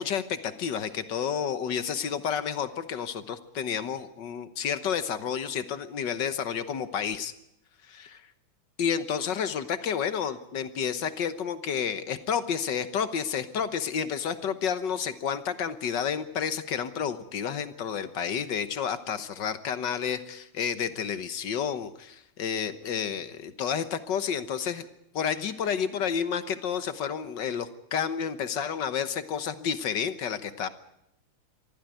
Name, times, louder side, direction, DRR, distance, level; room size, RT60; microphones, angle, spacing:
voice 1, 0.0-7.3 8.8-24.9 25.1-30.7, left 7 dB, 60° left, 12 dB, 1.7 m, -30 dB
24.5 x 14.5 x 9.2 m, 0.80 s
omnidirectional pair, 2.4 m